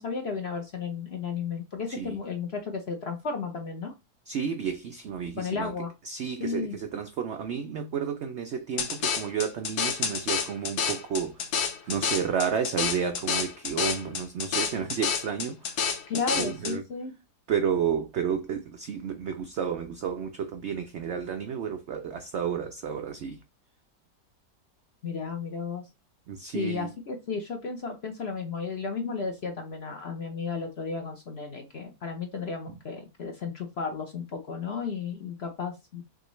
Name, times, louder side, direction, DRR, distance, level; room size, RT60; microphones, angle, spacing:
voice 1, 0.0-3.9 5.4-5.9 6.4-6.8 16.1-17.1 25.0-25.8 26.5-36.0, left 5 dB, 55° left, 0.7 m, -33 dB
voice 2, 4.3-5.7 6.0-11.6 11.8-15.9 16.3-16.8 17.5-23.4 26.3-26.9 32.7-32.8, right 7 dB, 85° right, 0.6 m, -31 dB
sound 1, 8.8-16.7, left 6 dB, 70° left, 1.3 m, -29 dB
6.0 x 2.5 x 3.1 m
omnidirectional pair, 1.8 m